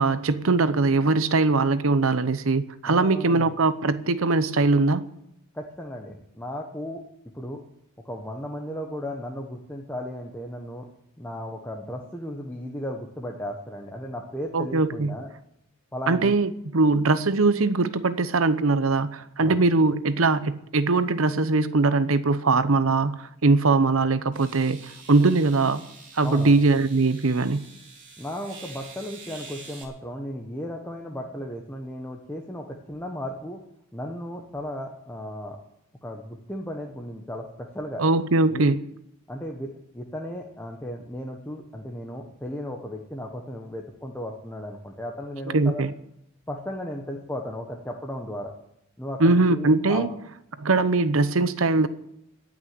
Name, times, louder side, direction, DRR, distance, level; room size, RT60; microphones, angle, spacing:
voice 1, 0.0-5.0 14.5-15.2 16.1-24.8 25.1-25.8 26.2-27.7 38.0-38.8 45.5-45.9 49.2-50.1 50.6-51.9, right 3 dB, 75° right, 0.9 m, -21 dB
voice 2, 2.8-3.6 5.5-7.0 7.3-7.6 8.0-10.8 11.2-15.3 15.9-16.3 19.4-19.6 26.2-26.5 28.2-33.6 33.9-35.6 36.0-38.0 38.5-38.8 39.3-45.8 46.5-48.5 49.0-50.1, equal, 10° left, 1.2 m, -35 dB
sound 1, 24.3-29.8, right 4 dB, 40° right, 3.3 m, -46 dB
18.0 x 6.2 x 9.6 m
head